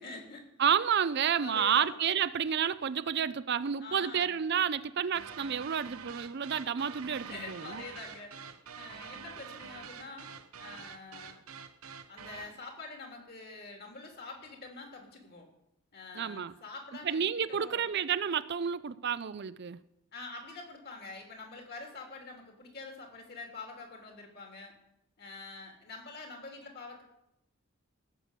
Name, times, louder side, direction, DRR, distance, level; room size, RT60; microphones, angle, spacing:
voice 1, 0.0-0.4 1.4-2.0 3.8-4.4 7.3-8.5 8.8-10.3 10.6-11.4 12.1-15.5 15.9-17.9 20.1-24.7 25.2-27.0, left 3 dB, 45° left, 2 dB, 3.1 m, -46 dB
voice 2, 0.6-7.8 16.2-16.5 17.0-19.8, right 8 dB, 50° right, 15 dB, 0.4 m, -30 dB
sound 1, 5.1-12.6, right 6 dB, 75° right, 1.0 m, -46 dB
17.0 x 7.0 x 8.2 m, 0.84 s
head